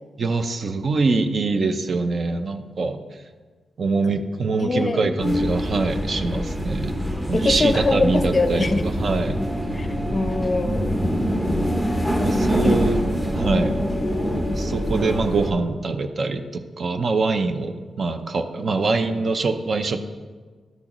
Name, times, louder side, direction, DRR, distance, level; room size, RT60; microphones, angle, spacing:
voice 1, 0.2-3.0 3.8-6.9 7.3-9.4 12.2-13.0 13.3-13.8 14.6-20.0, right 3 dB, 45° right, 8 dB, 0.5 m, -24 dB
voice 2, 4.6-5.0 7.3-8.8 9.7-10.9 11.8-12.3 12.6-12.8 13.4-13.7, left 3 dB, 30° left, 8 dB, 0.5 m, -24 dB
sound 1, 5.2-15.5, equal, 10° right, 0.9 m, -24 dB
12.5 x 6.3 x 3.0 m, 1.4 s
wide cardioid pair, 130°, 0 cm